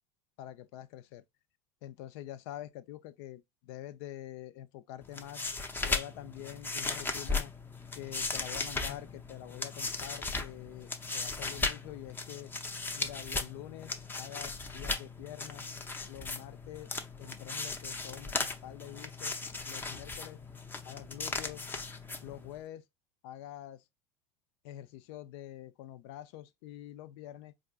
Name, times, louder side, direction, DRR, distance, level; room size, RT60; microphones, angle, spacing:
voice 1, 0.4-1.2 1.8-5.4 5.8-7.5 7.9-12.5 13.0-15.6 16.1-16.9 17.2-19.3 19.6-20.4 20.8-21.6 22.2-22.8 23.2-23.8 24.6-27.5, left 13 dB, 65° left, 0.5 m, -46 dB
sound 1, 5.0-22.6, left 3 dB, 15° left, 0.6 m, -37 dB
4.3 x 2.5 x 2.4 m
hypercardioid pair, 90°, 15 cm